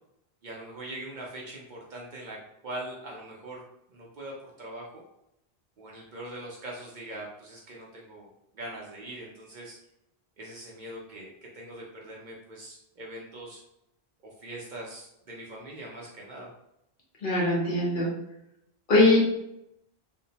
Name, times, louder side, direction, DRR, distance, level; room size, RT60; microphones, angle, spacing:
voice 1, 0.4-2.4 2.6-5.0 5.8-8.3 8.5-9.8 10.4-11.3 11.5-13.6 14.4-16.5, right 1 dB, 55° right, -3 dB, 0.6 m, -42 dB
voice 2, 17.2-18.1 18.9-19.3, left 2 dB, 55° left, -4 dB, 1.0 m, -21 dB
2.6 x 2.1 x 2.7 m, 0.80 s
omnidirectional pair, 1.1 m